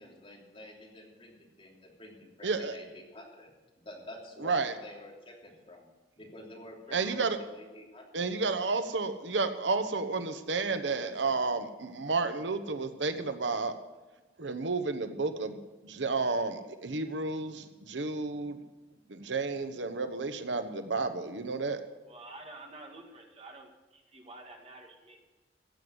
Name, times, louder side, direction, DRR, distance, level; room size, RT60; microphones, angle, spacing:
voice 1, 0.0-3.5 3.8-8.3 8.6-8.8 10.6-11.4, left 1 dB, 30° left, -2 dB, 3.3 m, -50 dB
voice 2, 2.4-2.8 4.4-4.7 6.9-7.4 8.1-13.7 14.4-18.6 19.1-21.8, right 3 dB, 90° right, 9 dB, 1.0 m, -31 dB
voice 3, 22.1-25.2, right 2 dB, 35° right, 2 dB, 2.0 m, -49 dB
15.0 x 7.9 x 7.9 m, 1.1 s
head